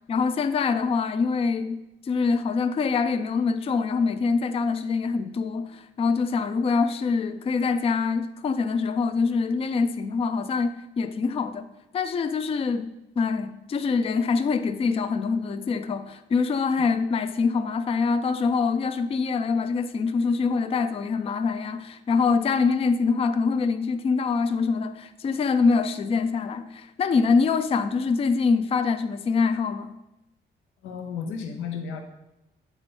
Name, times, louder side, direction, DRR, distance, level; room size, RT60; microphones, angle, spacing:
voice 1, 0.1-11.7 11.9-12.9 13.2-29.9, left 4 dB, 30° left, 0.4 m, -24 dB
voice 2, 30.8-32.0, left 6 dB, 85° left, 0.6 m, -33 dB
8.1 x 3.9 x 3.7 m
cardioid pair, 90°, 20 cm